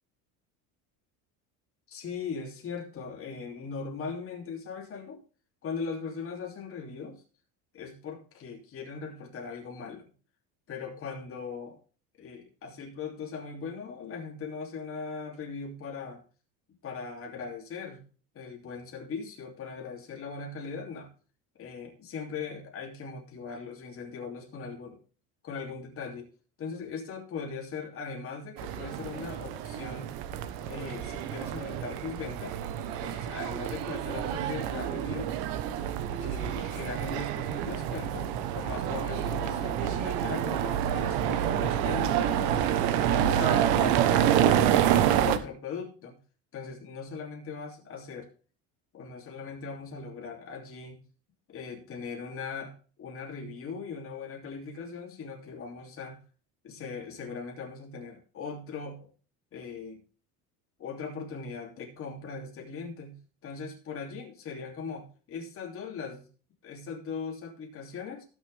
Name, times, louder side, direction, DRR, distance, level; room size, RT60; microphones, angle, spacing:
voice 1, 1.9-5.2 5.6-7.2 7.7-10.1 10.7-11.8 12.2-16.2 16.8-18.0 18.3-21.1 21.6-25.0 25.4-26.3 26.6-30.2 30.7-32.6 33.0-35.3 36.1-42.5 43.1-46.2 46.5-48.3 48.9-51.0 51.5-56.2 56.6-59.1 59.5-60.0 60.8-66.3 66.6-68.2, left 5 dB, 35° left, 0 dB, 2.9 m, -39 dB
sound 1, 28.6-45.4, right 10 dB, 80° right, 1.2 m, -28 dB
17.0 x 6.7 x 3.5 m, 0.37 s
cardioid pair, 155°, 37 cm